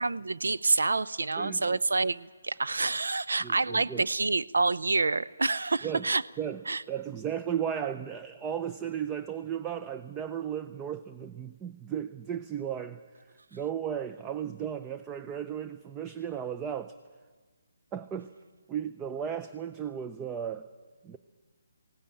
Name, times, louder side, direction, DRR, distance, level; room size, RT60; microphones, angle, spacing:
voice 1, 0.0-6.2 6.7-6.8, right 3 dB, 80° right, 15 dB, 0.6 m, -27 dB
voice 2, 1.4-1.8 3.4-4.0 5.8-6.0 6.4-6.6 6.9-13.0 13.5-17.0 17.9-18.3 18.7-20.7 21.0-21.2, right 9 dB, 15° right, 10 dB, 0.5 m, -35 dB
18.5 x 17.5 x 8.9 m, 1.5 s
figure-of-eight pair, 150°, 0 cm